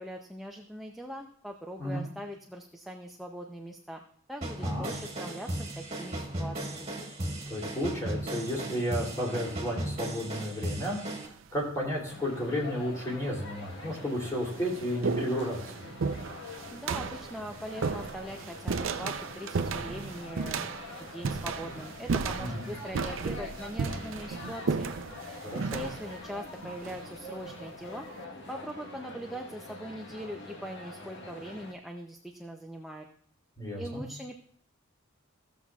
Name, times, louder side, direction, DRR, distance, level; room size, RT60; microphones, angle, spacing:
voice 1, 0.0-4.0 4.3-6.9 16.7-20.6 20.9-24.9 25.7-28.1 28.5-33.1 33.8-34.4, equal, ahead, 1 dB, 0.5 m, -41 dB
sound 1, 4.4-11.3, right 1 dB, 30° right, 1.7 m, -36 dB
voice 2, 4.6-4.9 7.5-11.0 11.5-15.6 22.4-22.7 25.4-25.9 33.6-34.0, equal, 15° left, -4 dB, 2.8 m, -32 dB
sound 2, 11.2-11.7 12.6-12.7 13.6-13.7 14.0-27.6, right 4 dB, 65° right, 0.5 m, -34 dB
sound 3, 12.1-31.7, left 2 dB, 60° left, 1.2 m, -45 dB
15.5 x 7.3 x 2.3 m, 0.62 s
head